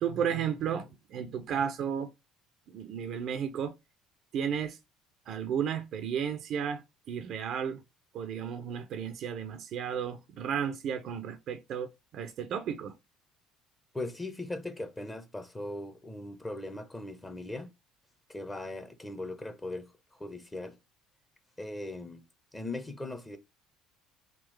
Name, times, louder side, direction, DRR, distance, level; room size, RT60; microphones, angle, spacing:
voice 1, 0.0-2.1 2.7-3.7 4.3-4.8 5.3-7.8 8.1-13.0, right 8 dB, 55° right, 0.5 m, -33 dB
voice 2, 13.9-17.7 18.3-20.8 21.6-22.2 22.5-23.4, left 2 dB, 15° left, 0.8 m, -39 dB
3.8 x 2.4 x 3.2 m
hypercardioid pair, 60°, 0 cm